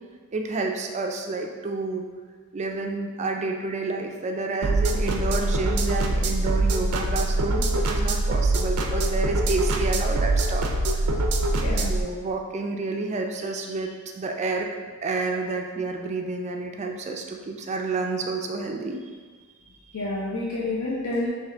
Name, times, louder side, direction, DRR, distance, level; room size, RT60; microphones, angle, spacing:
voice 1, 0.3-2.1 2.5-10.7 11.9-14.7 15.0-19.2, right 3 dB, 30° right, 2 dB, 0.3 m, -29 dB
sound 1, 4.6-12.0, right 2 dB, 90° right, 0.5 m, -23 dB
voice 2, 11.4-11.9 19.9-21.3, left 2 dB, 70° left, -5 dB, 0.6 m, -29 dB
3.3 x 3.1 x 3.6 m, 1.5 s
head